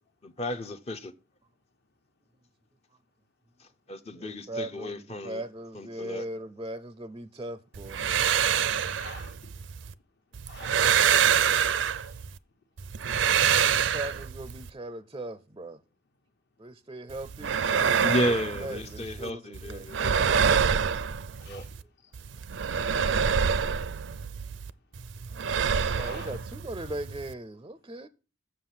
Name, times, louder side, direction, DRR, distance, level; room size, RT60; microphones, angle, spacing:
voice 1, 0.2-1.1 3.6-5.4 5.7-6.2 18.0-20.2 21.5-21.6, left 1 dB, 35° left, 0.6 m, -33 dB
voice 2, 4.1-8.1 13.7-15.8 16.6-19.9 25.9-28.1, right 1 dB, 25° right, 0.4 m, -39 dB
sound 1, 7.7-9.9 10.3-12.4 12.8-14.7 17.1-19.3 19.5-21.8 22.1-24.7 24.9-27.3, right 7 dB, 80° right, 0.5 m, -26 dB
voice 3, 8.7-9.4 10.5-10.8 11.9-12.2 21.3-21.7 22.0-22.1 22.8-23.2 25.8-26.3, left 4 dB, 60° left, 1.3 m, -48 dB
7.5 x 6.4 x 7.2 m
head